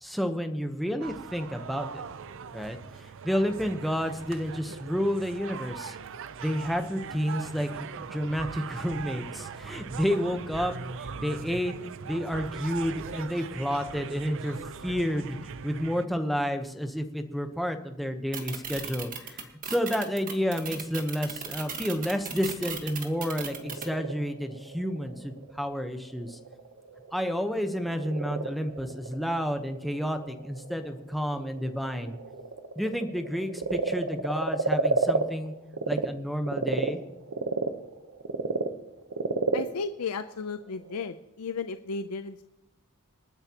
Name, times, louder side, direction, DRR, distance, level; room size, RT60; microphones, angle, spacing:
voice 1, 0.0-2.0 2.5-5.9 6.4-10.7 11.0-11.7 12.0-14.6 14.8-15.4 15.6-26.4 27.1-32.2 32.8-35.5 35.9-37.0, equal, ahead, 6 dB, 1.0 m, -30 dB
sound 1, 1.0-16.1, right 6 dB, 60° right, 0.5 m, -40 dB
sound 2, 18.3-23.8, right 7 dB, 40° right, 1.7 m, -36 dB
Frog, 23.3-36.1 36.4-41.1, right 3 dB, 75° right, 1.0 m, -32 dB
voice 2, 39.5-42.4, left 4 dB, 85° left, 10 dB, 0.6 m, -34 dB
27.0 x 9.8 x 3.0 m, 0.96 s
head